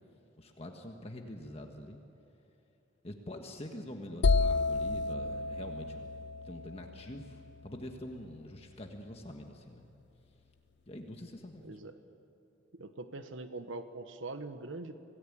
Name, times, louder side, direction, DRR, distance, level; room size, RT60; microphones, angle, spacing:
voice 1, 0.4-2.0 3.0-6.1 6.4-9.9 10.9-11.8, left 1 dB, 30° left, 3 dB, 1.5 m, -45 dB
sound 1, 4.2-8.0, left 3 dB, 60° left, 0.5 m, -31 dB
voice 2, 11.6-11.9 12.7-15.0, right 2 dB, 80° right, 9 dB, 1.2 m, -42 dB
27.0 x 18.0 x 8.7 m, 3.0 s
head